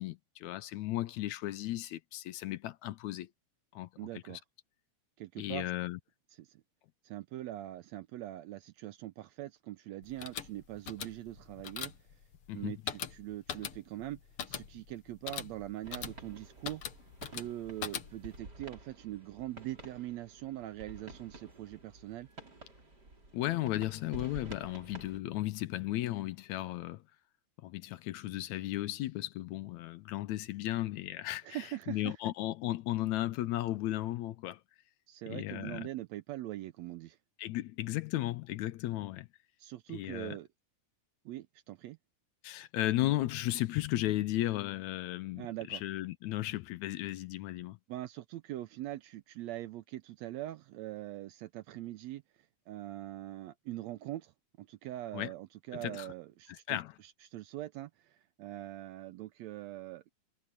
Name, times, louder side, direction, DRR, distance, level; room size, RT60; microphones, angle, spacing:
voice 1, 0.0-3.3 3.7-3.9 5.4-6.0 12.5-12.8 23.3-27.0 27.6-34.6 35.3-35.9 37.4-39.3 39.9-40.4 42.4-47.8 55.1-55.3 55.8-56.1 56.5-57.0, left 15 dB, 75° left, 1.9 m, -35 dB
voice 2, 4.0-4.4 5.2-5.7 6.4-6.6 7.0-11.9 12.5-14.2 14.5-16.8 17.3-22.3 31.4-32.1 35.1-37.2 39.6-40.5 41.3-42.0 45.4-45.8 47.9-52.2 52.7-54.3 54.6-60.1, right 15 dB, 80° right, 1.6 m, -42 dB
sound 1, 10.0-18.4, left 8 dB, 55° left, 2.0 m, -42 dB
sound 2, 15.8-25.2, right 2 dB, 30° right, 5.8 m, -51 dB
omnidirectional pair, 3.7 m